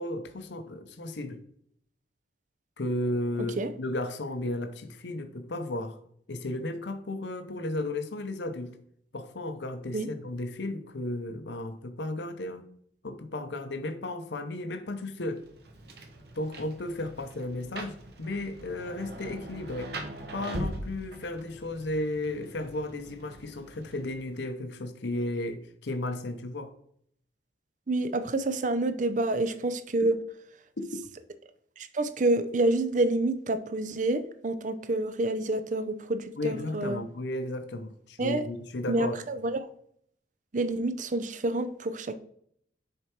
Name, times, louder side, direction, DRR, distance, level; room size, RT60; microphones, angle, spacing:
voice 1, 0.0-1.4 2.8-6.0 6.3-8.8 9.1-12.7 13.0-15.4 16.4-20.0 20.3-26.7 30.8-31.0 36.4-39.1, left 1 dB, 70° left, 0.7 m, -34 dB
Rain, 15.3-24.4, right 1 dB, 55° right, 1.0 m, -42 dB
voice 2, 27.9-30.2 31.8-37.0 38.2-38.5 38.9-39.7 40.5-42.1, right 2 dB, 40° right, 0.6 m, -28 dB
6.6 x 4.5 x 4.5 m
head